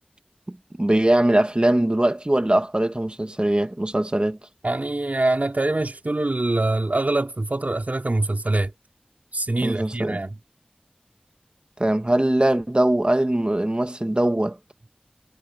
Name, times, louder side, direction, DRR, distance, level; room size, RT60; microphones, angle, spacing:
voice 1, 0.5-4.4 9.6-10.2 11.8-14.6, right 1 dB, 35° right, 1.7 m, -21 dB
voice 2, 4.6-8.7 9.3-10.4, right 2 dB, 65° right, 4.0 m, -24 dB
wide cardioid pair, 40°, 3 cm